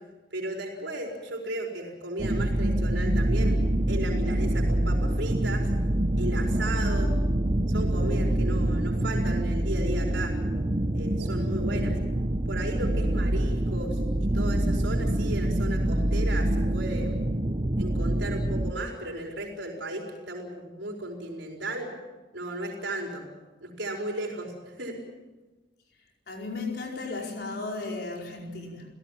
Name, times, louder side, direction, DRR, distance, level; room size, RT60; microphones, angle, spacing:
voice 1, 0.3-3.6 3.9-5.7 6.2-7.1 7.7-10.3 10.9-11.9 12.5-17.2 17.8-21.9 22.3-23.2 23.6-25.0, right 1 dB, 85° right, 0 dB, 4.8 m, -35 dB
sound 1, 2.2-18.7, right 1 dB, 30° right, 0.8 m, -26 dB
voice 2, 26.3-28.9, left 3 dB, 60° left, 0 dB, 4.8 m, -35 dB
29.5 x 17.0 x 7.5 m, 1.2 s
head